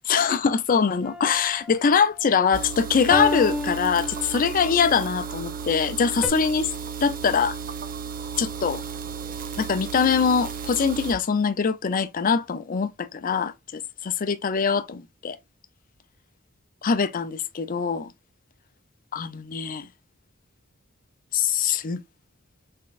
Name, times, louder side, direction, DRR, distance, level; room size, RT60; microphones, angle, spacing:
voice 1, 0.0-6.7 7.0-7.6 8.4-8.8 9.6-15.4 16.8-18.1 19.1-19.9 21.3-22.0, left 6 dB, 40° left, 0.5 m, -23 dB
sound 1, 1.0-1.7 3.1-4.7 6.2-6.3, left 1 dB, ahead, 0.7 m, -29 dB
sound 2, 2.5-11.1, right 6 dB, 45° right, 0.5 m, -34 dB
3.9 x 3.6 x 2.4 m
head